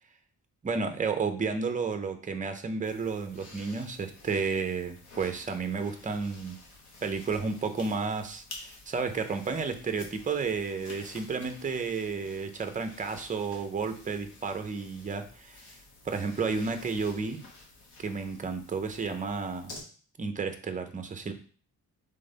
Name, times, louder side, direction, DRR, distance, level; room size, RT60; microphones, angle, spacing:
voice 1, 0.6-6.6 7.0-15.7 16.1-17.4 18.0-19.7 20.2-21.3, right 4 dB, 20° right, 7 dB, 0.5 m, -32 dB
sound 1, 2.8-19.8, left 2 dB, 90° left, 1.3 m, -51 dB
3.8 x 3.5 x 3.8 m, 0.42 s
wide cardioid pair, 150°, 38 cm